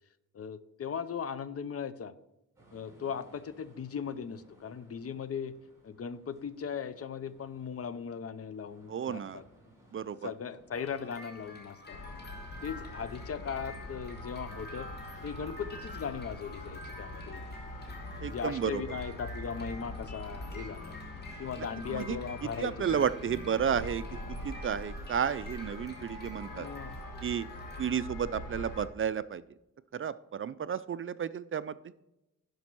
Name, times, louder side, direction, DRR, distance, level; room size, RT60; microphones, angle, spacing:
voice 1, 0.3-2.1 2.7-5.5 5.8-9.4 10.2-12.0 12.6-14.9 15.2-17.4 18.2-21.0 21.4-23.0 26.4-26.9, left 6 dB, 45° left, 15 dB, 0.6 m, -38 dB
sound 1, 2.6-18.2, right 1 dB, 10° right, 3.4 m, -62 dB
voice 2, 8.9-9.4 9.9-10.3 18.2-19.0 21.9-22.2 22.6-24.0 24.4-26.7 27.2-27.5 27.8-29.4 29.9-31.8, right 8 dB, 40° right, 15 dB, 0.4 m, -32 dB
sound 2, 10.7-28.1, left 1 dB, 30° left, 2.3 m, -49 dB
sound 3, 11.9-28.9, left 1 dB, 85° left, 1.4 m, -43 dB
11.5 x 5.3 x 4.5 m, 0.91 s
cardioid pair, 90°, 32 cm